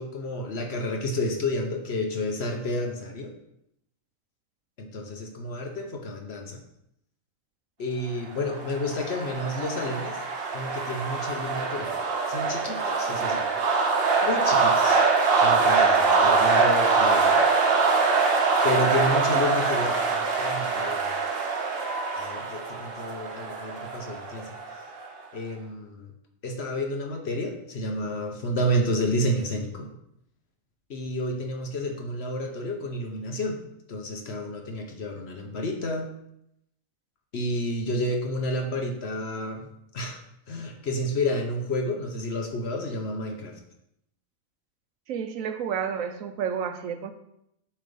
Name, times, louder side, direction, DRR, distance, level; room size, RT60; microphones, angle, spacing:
voice 1, 0.0-3.3 4.8-6.6 7.8-10.2 10.5-11.9 12.3-13.4 14.2-15.0 15.4-17.4 18.6-21.2 22.2-24.5 25.3-26.1 26.4-29.9 30.9-33.6 33.9-36.1 37.3-39.7 39.9-40.2 40.5-43.6, left 1 dB, 55° left, 3 dB, 1.0 m, -30 dB
sound 1, 8.4-25.1, right 4 dB, 50° right, 1.0 m, -24 dB
voice 2, 45.1-47.1, right 7 dB, 70° right, 8 dB, 1.0 m, -30 dB
7.2 x 3.3 x 5.1 m, 0.78 s
omnidirectional pair, 1.5 m